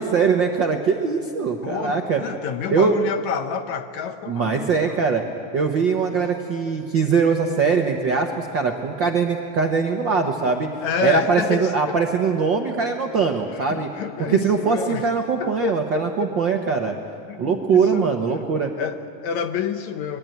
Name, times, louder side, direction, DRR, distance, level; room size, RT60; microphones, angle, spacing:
voice 1, 0.0-2.2 2.7-3.0 4.3-5.2 5.5-10.7 11.0-13.9 14.3-17.0 17.4-18.7, right 5 dB, 60° right, 2 dB, 1.2 m, -21 dB
voice 2, 1.6-5.0 6.1-6.3 10.8-12.0 13.5-15.1 15.4-16.6 17.3-18.2 18.8-20.2, left 7 dB, 70° left, 8 dB, 2.0 m, -29 dB
25.5 x 22.0 x 9.3 m, 2.5 s
omnidirectional pair, 3.9 m